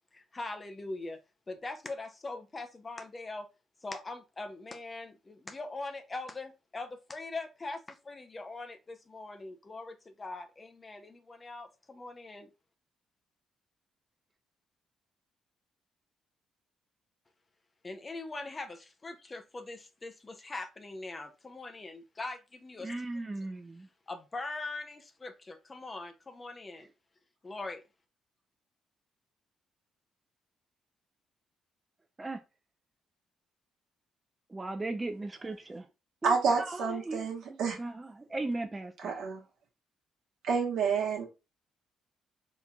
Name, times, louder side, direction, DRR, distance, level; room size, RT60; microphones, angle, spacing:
voice 1, 0.1-1.2 1.5-3.5 3.8-12.5 17.8-23.0 23.4-23.5 24.1-26.9 27.4-27.8, left 2 dB, 25° left, 0.6 m, -42 dB
voice 2, 22.8-23.9 26.8-26.9 32.2-32.4 34.5-35.9 36.2-39.1, right 2 dB, 20° right, 0.5 m, -38 dB
voice 3, 36.2-37.8 39.0-39.4 40.4-41.3, right 5 dB, 80° right, 1.0 m, -29 dB
3.7 x 3.0 x 2.2 m
cardioid pair, 90°, 0 cm